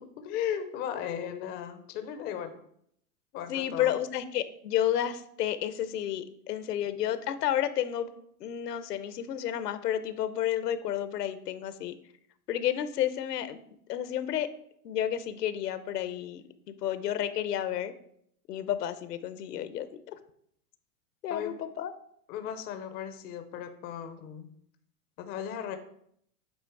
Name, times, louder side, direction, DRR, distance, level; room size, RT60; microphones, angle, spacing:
voice 1, 0.0-2.6 3.3-4.0 21.3-21.5 22.3-24.5 25.2-25.8, left 9 dB, 20° left, 8 dB, 0.4 m, -36 dB
voice 2, 3.5-8.1 8.4-12.0 12.5-13.6 13.9-14.5 14.8-17.9 18.5-20.1 21.2-21.9, left 11 dB, 90° left, 12 dB, 0.8 m, -31 dB
8.1 x 3.1 x 4.5 m, 0.69 s
hypercardioid pair, 130°, 46 cm